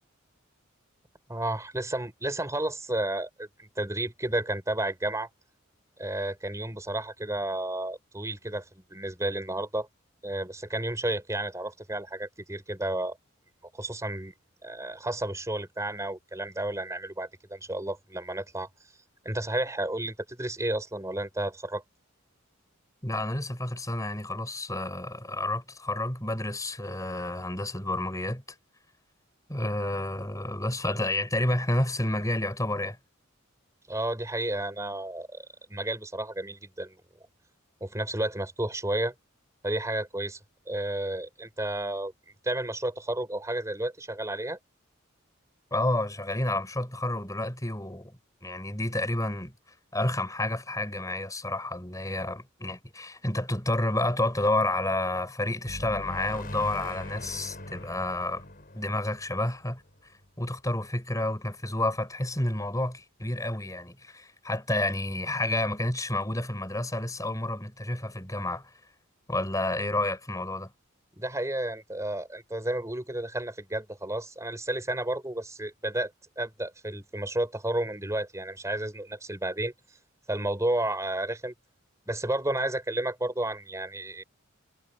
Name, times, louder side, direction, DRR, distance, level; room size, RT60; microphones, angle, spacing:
voice 1, 1.3-5.3 6.0-9.9 10.2-13.2 13.7-14.3 14.6-18.7 19.2-21.8 33.9-37.0 37.8-39.1 39.6-40.4 40.7-42.1 42.4-44.6 71.2-76.1 76.4-79.7 80.3-81.5 82.1-84.2, right 1 dB, 15° right, 4.5 m, -32 dB
voice 2, 23.0-28.4 29.5-33.0 45.7-49.5 49.9-58.5 58.7-68.8 69.3-70.7, left 1 dB, 15° left, 5.3 m, -30 dB
sound 1, 55.6-60.2, left 1 dB, 45° left, 7.3 m, -41 dB
head